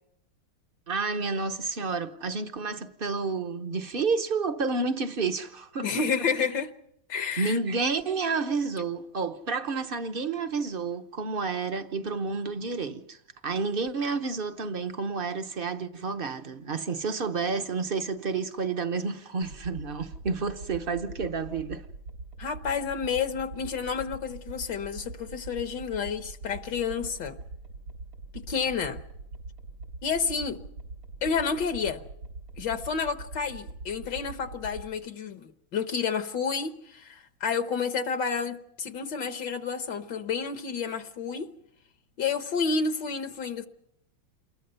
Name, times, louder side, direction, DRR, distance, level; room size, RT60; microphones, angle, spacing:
voice 1, 0.9-6.0 7.4-13.2 13.4-21.8, right 4 dB, 40° right, 0.8 m, -30 dB
voice 2, 5.8-6.7 7.1-7.6 22.4-27.4 28.3-29.0 30.0-30.6 31.2-32.0 32.6-41.5 42.2-43.7, left 5 dB, 65° left, 1.7 m, -30 dB
sound 1, 19.4-34.9, right 3 dB, 85° right, 4.6 m, -43 dB
28.0 x 21.5 x 5.6 m
omnidirectional pair, 2.1 m